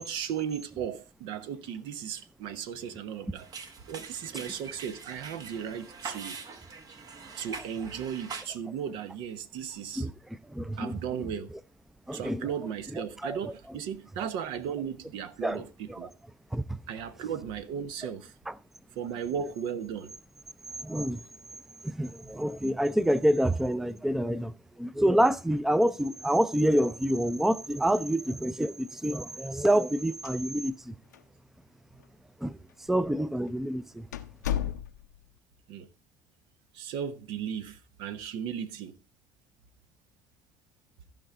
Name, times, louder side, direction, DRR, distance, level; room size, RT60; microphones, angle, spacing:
voice 1, 0.0-3.5 3.9-6.4 7.4-10.1 10.8-11.5 12.1-16.1 16.9-18.3 18.9-20.1 35.7-35.9 36.7-39.0, right 8 dB, 65° right, 0.9 m, -36 dB
sound 1, 3.4-8.4, right 5 dB, 45° right, 1.3 m, -43 dB
voice 2, 10.5-10.9 12.1-12.4 13.2-13.4 15.4-15.6 15.9-16.1 16.5-16.8 20.8-21.2 21.8-30.9 32.4-32.6 32.9-34.1 34.5-34.6, right 1 dB, 5° right, 0.5 m, -27 dB
sound 2, 30.1-30.9 31.1-31.2 32.0-32.1 32.9-33.1 33.5-33.6 34.1-35.2, left 10 dB, 90° left, 0.6 m, -34 dB
15.0 x 5.3 x 3.7 m
hypercardioid pair, 65°, 9 cm